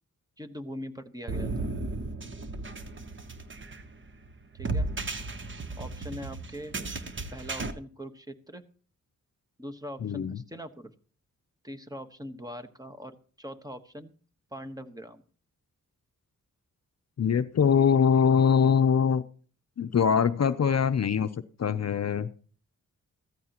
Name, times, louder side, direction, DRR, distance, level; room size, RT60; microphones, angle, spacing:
voice 1, 0.4-1.7 4.5-4.9 5.8-6.8 7.3-8.6 9.6-10.9 11.6-14.1 14.5-15.2, equal, 10° right, 7 dB, 1.2 m, -42 dB
sound 1, 1.3-7.7, right 2 dB, 35° right, 1.1 m, -35 dB
voice 2, 10.0-10.4 17.2-19.2 19.8-21.3 21.6-22.3, left 7 dB, 50° left, 11 dB, 0.6 m, -23 dB
14.5 x 14.5 x 2.9 m, 0.42 s
wide cardioid pair, 95°, 33 cm